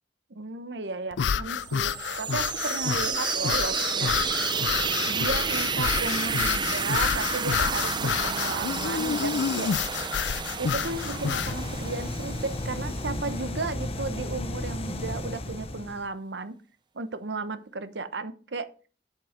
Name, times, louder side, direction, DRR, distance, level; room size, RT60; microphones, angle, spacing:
voice 1, 0.4-4.2 5.0-9.7 10.6-16.6 16.9-18.7, right 3 dB, 80° right, 13 dB, 0.9 m, -34 dB
sound 1, 1.1-11.6, left 7 dB, 85° left, 0.4 m, -29 dB
sound 2, 1.7-13.4, right 5 dB, 25° right, 0.7 m, -31 dB
sound 3, 10.4-16.1, left 1 dB, 35° left, 0.9 m, -34 dB
7.7 x 7.5 x 5.1 m, 0.39 s
head